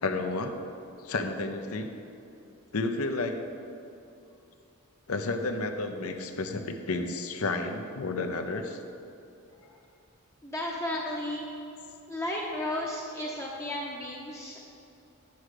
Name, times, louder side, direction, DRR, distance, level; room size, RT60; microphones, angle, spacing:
voice 1, 0.0-0.5 1.0-1.9 2.7-3.4 5.1-8.8, left 3 dB, 75° left, 6 dB, 0.7 m, -31 dB
voice 2, 10.4-11.4 12.1-14.6, left 1 dB, 10° left, -3 dB, 0.7 m, -34 dB
9.5 x 4.8 x 6.5 m, 2.7 s
head